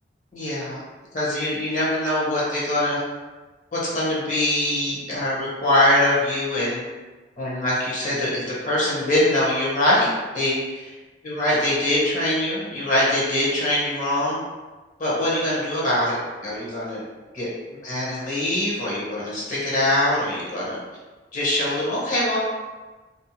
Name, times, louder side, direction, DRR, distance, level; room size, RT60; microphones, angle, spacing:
voice 1, 0.3-0.8 1.1-3.0 3.7-6.8 7.4-10.1 10.3-10.9 11.2-14.4 15.0-16.2 16.4-17.0 17.3-17.5 17.8-20.8 21.3-22.4, left 1 dB, 45° left, -7 dB, 0.9 m, -23 dB
2.6 x 2.0 x 2.8 m, 1.2 s
head